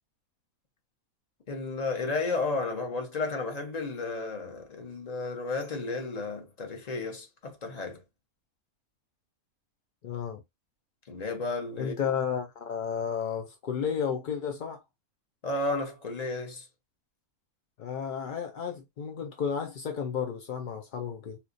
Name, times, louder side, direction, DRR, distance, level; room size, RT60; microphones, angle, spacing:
voice 1, 1.5-8.0 11.1-11.9 15.4-16.7, left 3 dB, 35° left, 0.8 m, -33 dB
voice 2, 10.0-10.4 11.8-14.8 17.8-21.4, left 7 dB, 65° left, 0.5 m, -32 dB
4.3 x 2.3 x 2.5 m
omnidirectional pair, 1.5 m